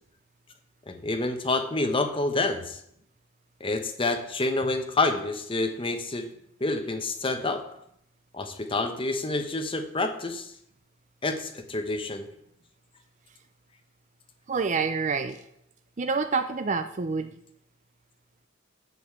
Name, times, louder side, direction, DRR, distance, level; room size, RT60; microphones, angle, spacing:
voice 1, 0.9-2.8 3.6-6.3 6.6-7.6 8.3-10.5 11.2-12.3, left 2 dB, 25° left, 6 dB, 1.0 m, -28 dB
voice 2, 14.5-15.4 16.0-17.3, right 4 dB, 35° right, 8 dB, 0.5 m, -27 dB
8.0 x 7.0 x 7.0 m, 0.74 s
head